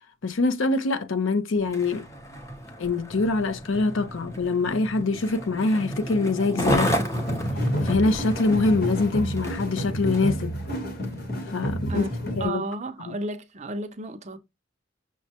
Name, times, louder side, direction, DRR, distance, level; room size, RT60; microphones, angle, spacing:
voice 1, 0.2-2.1 2.8-7.0 7.8-10.6 11.5-12.1 12.4-12.6 13.0-13.2, left 3 dB, 80° left, 0.6 m, -24 dB
Skateboard, 1.6-10.4 11.0-11.2, equal, 15° left, 0.7 m, -32 dB
sound 1, 7.1-12.5, equal, 50° left, 1.1 m, -30 dB
voice 2, 12.4-14.4, right 2 dB, 35° right, 0.5 m, -33 dB
6.1 x 2.2 x 2.8 m
head